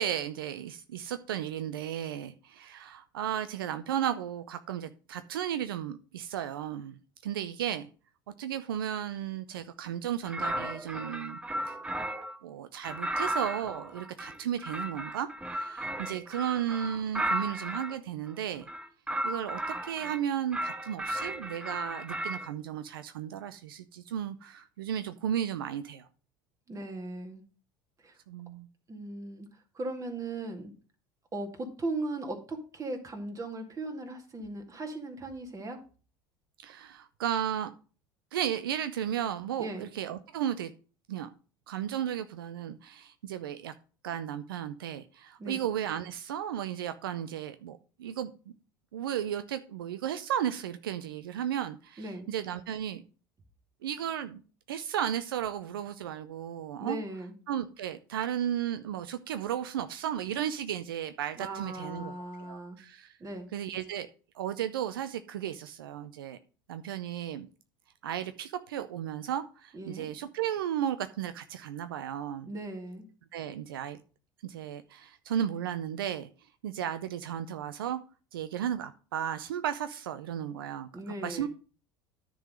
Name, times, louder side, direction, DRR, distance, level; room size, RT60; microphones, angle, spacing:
voice 1, 0.0-7.9 8.4-11.4 11.7-11.8 12.4-18.7 19.2-26.1 28.3-28.7 36.6-37.7 38.3-40.7 41.1-41.3 41.7-43.7 44.0-48.3 48.9-53.0 53.8-54.4 54.7-57.0 57.5-62.1 62.4-63.2 63.5-64.1 64.3-66.4 66.7-67.5 68.0-72.5 73.3-74.0 74.4-76.3 76.6-78.0 78.3-80.9 81.2-81.5, right 10 dB, 85° right, 11 dB, 0.5 m, -34 dB
sound 1, 10.3-12.4 12.8-17.9 18.6-20.2 20.5-22.5, right 1 dB, 10° right, 0.8 m, -35 dB
voice 2, 26.7-27.4 28.0-28.2 28.9-29.5 29.7-30.7 31.3-35.8 39.6-39.9 45.4-45.6 52.0-52.3 56.8-57.3 61.4-62.8 63.2-63.5 69.7-70.1 72.5-73.1 80.9-81.5, right 2 dB, 30° right, 3 dB, 2.2 m, -38 dB
10.0 x 3.9 x 6.4 m, 0.37 s
hypercardioid pair, 75°, 12 cm